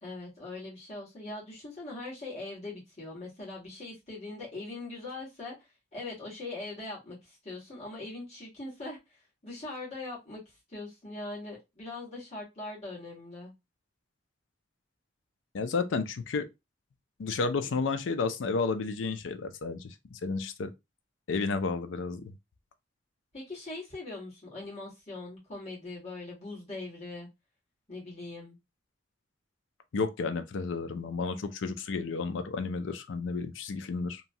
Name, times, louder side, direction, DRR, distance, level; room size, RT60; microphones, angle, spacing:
voice 1, 0.0-13.5 23.3-27.3 27.9-28.6, left 2 dB, 35° left, 1.5 m, -41 dB
voice 2, 15.5-16.5 17.2-20.7 21.3-22.3 29.9-34.2, left 4 dB, 80° left, 0.4 m, -32 dB
2.9 x 2.2 x 2.6 m
head